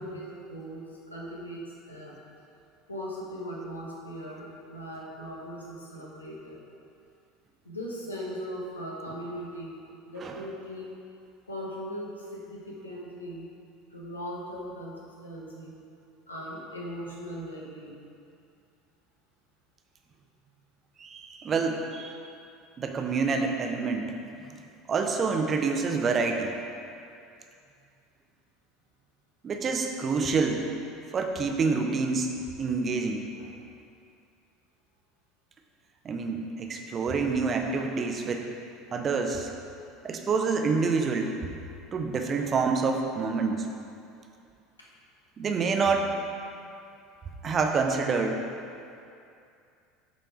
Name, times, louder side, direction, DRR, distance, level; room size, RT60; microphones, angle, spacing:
voice 1, 0.0-2.2 2.9-6.6 7.6-11.0 11.5-13.5 13.9-15.7 16.3-18.0 21.7-21.9 33.4-33.5 44.8-44.9, equal, 80° left, -4 dB, 1.2 m, -39 dB
voice 2, 21.0-22.2 22.8-24.2 24.9-26.5 29.4-30.6 31.1-32.3 32.6-33.3 36.0-38.5 38.9-39.5 40.0-41.3 41.9-43.7 45.4-46.1 47.4-48.4, right 4 dB, 30° right, 3 dB, 0.7 m, -27 dB
8.0 x 4.5 x 4.8 m, 2.5 s
figure-of-eight pair, 70°, 0 cm